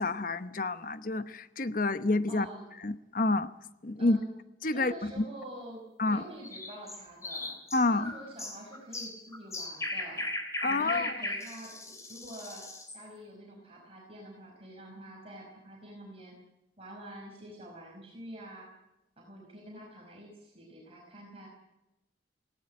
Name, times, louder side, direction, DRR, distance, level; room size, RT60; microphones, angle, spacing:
voice 1, 0.0-2.5 2.8-3.5 3.8-4.2 4.6-5.3 6.0-6.2 7.7-8.1 10.6-11.1, left 2 dB, 45° left, 13 dB, 0.9 m, -28 dB
voice 2, 2.3-2.6 4.0-4.3 4.7-7.5 7.9-10.3 10.6-12.7 12.9-16.3 16.8-18.7 19.2-21.5, right 1 dB, 30° right, -2 dB, 5.4 m, -46 dB
sound 1, 6.4-13.0, left 1 dB, 15° left, 3.2 m, -38 dB
18.5 x 17.0 x 8.6 m, 0.92 s
head